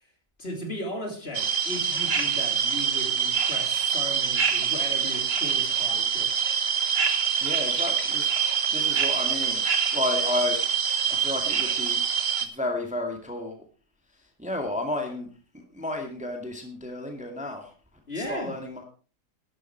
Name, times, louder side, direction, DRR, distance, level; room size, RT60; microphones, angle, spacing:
voice 1, 0.4-6.4 18.1-18.6, equal, 35° left, 3 dB, 3.1 m, -36 dB
sound 1, 1.3-12.5, right 7 dB, 40° right, 1.4 m, -25 dB
voice 2, 7.4-8.3 8.7-9.7 9.9-10.6 11.1-12.0 12.4-13.6 14.4-17.7 18.2-18.8, left 2 dB, 5° right, 3 dB, 2.0 m, -32 dB
12.0 x 12.0 x 4.6 m, 0.38 s
omnidirectional pair, 1.8 m